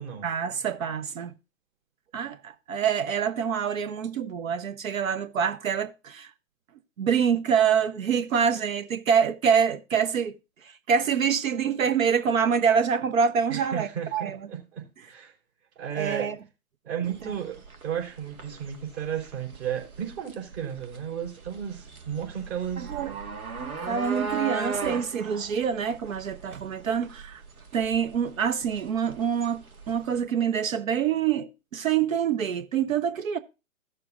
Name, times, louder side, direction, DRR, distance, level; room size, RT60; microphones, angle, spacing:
voice 1, 0.2-1.3 2.1-6.3 7.0-10.4 10.6-14.4 15.9-16.4 17.2-17.3 22.8-23.1 23.9-27.4 27.7-33.4, right 7 dB, 70° right, 0.9 m, -26 dB
voice 2, 13.5-15.3 15.8-16.3 16.8-22.9, right 8 dB, 50° right, 4.2 m, -34 dB
sound 1, 17.0-30.2, right 4 dB, 85° right, 1.8 m, -38 dB
15.0 x 6.7 x 2.5 m
hypercardioid pair, 130°, 42 cm